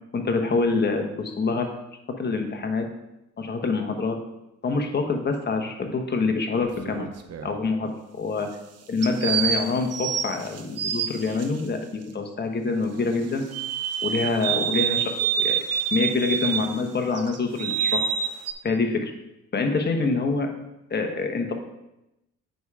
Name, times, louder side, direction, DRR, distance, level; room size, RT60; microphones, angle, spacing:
voice 1, 0.1-1.7 2.2-2.9 3.4-4.2 4.6-7.1 7.4-8.5 8.9-13.4 14.0-18.1 18.6-19.1 19.5-20.5 20.9-21.5, left 3 dB, 35° left, 4 dB, 1.3 m, -26 dB
sound 1, 6.6-7.6 9.0-11.5 13.5-16.8 17.1-18.5, right 7 dB, 55° right, 0.8 m, -27 dB
8.0 x 5.0 x 4.8 m, 0.90 s
cardioid pair, 90°, 30 cm